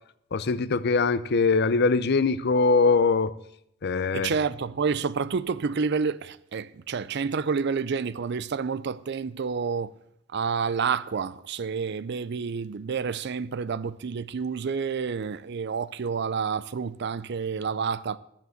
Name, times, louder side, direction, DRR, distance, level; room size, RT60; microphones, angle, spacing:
voice 1, 0.3-3.3 3.8-4.3, left 4 dB, 55° left, 0.6 m, -22 dB
voice 2, 4.1-9.9 10.3-18.2, right 5 dB, 60° right, 0.5 m, -29 dB
12.0 x 7.5 x 7.8 m
head